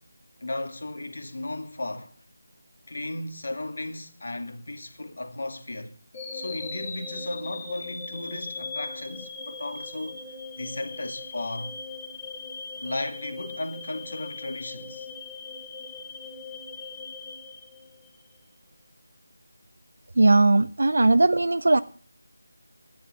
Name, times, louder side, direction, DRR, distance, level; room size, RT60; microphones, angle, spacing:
voice 1, 0.4-2.1 2.9-6.0 6.3-10.2 10.6-11.8 12.8-15.1, left 2 dB, 50° left, 2.4 m, -35 dB
sound 1, 6.1-18.3, left 4 dB, 20° left, 2.2 m, -39 dB
voice 2, 20.2-21.8, right 2 dB, 55° right, 0.6 m, -19 dB
11.0 x 10.0 x 7.5 m
figure-of-eight pair, 160°, 0 cm